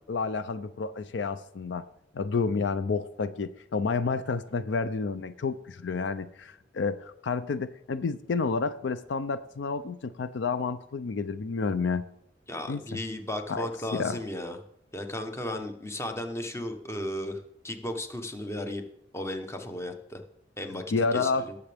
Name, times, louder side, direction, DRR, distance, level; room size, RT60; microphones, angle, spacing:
voice 1, 0.1-1.8 2.1-12.0 12.7-12.8 13.5-14.2 20.9-21.4, left 4 dB, 70° left, 13 dB, 0.4 m, -30 dB
voice 2, 12.5-14.6 14.9-17.4 17.6-18.8 19.1-20.2 20.6-20.8 21.1-21.6, left 1 dB, 15° left, 6 dB, 0.9 m, -35 dB
18.5 x 6.8 x 3.4 m, 0.77 s
head